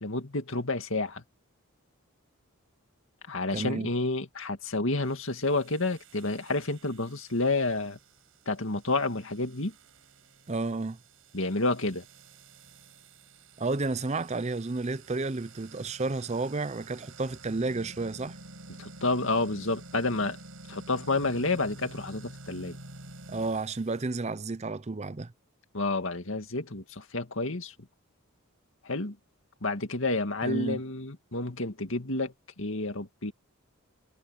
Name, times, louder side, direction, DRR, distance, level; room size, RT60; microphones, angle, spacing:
voice 1, 0.0-1.2 3.3-8.0 8.5-9.7 11.3-12.0 18.8-20.4 20.7-22.8 25.7-27.7 28.8-29.2 29.6-33.3, left 2 dB, 60° left, 2.3 m, -30 dB
voice 2, 3.5-3.9 10.5-11.0 13.6-18.4 23.3-25.3 30.4-30.8, right 3 dB, 30° right, 0.6 m, -31 dB
sound 1, 5.0-24.1, right 2 dB, 65° right, 5.8 m, -50 dB
head